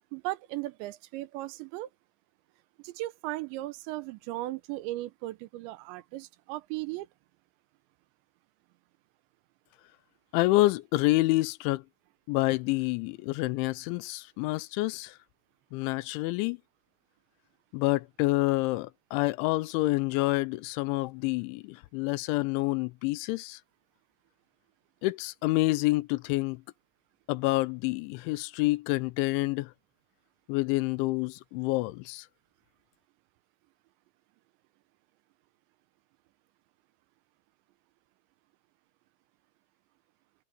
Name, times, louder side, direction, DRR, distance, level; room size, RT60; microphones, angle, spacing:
voice 1, 0.1-1.9 2.8-7.1, right 17 dB, 85° right, 2.9 m, -36 dB
voice 2, 10.3-11.8 12.3-15.2 15.7-16.6 17.7-23.6 25.0-26.6 27.3-29.7 30.5-32.3, left 20 dB, 85° left, 3.0 m, -28 dB
omnidirectional pair, 5.4 m